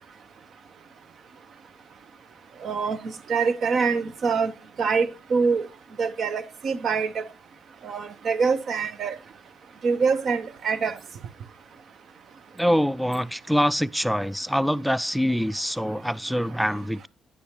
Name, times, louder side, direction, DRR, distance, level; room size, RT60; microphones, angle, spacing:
voice 1, 2.6-4.5 4.8-5.7 6.0-7.2 7.8-9.2 9.8-11.0, right 5 dB, 60° right, 0.8 m, -25 dB
voice 2, 12.6-17.1, equal, ahead, 0.3 m, -24 dB
9.9 x 6.9 x 3.0 m
cardioid pair, 90°, 0 cm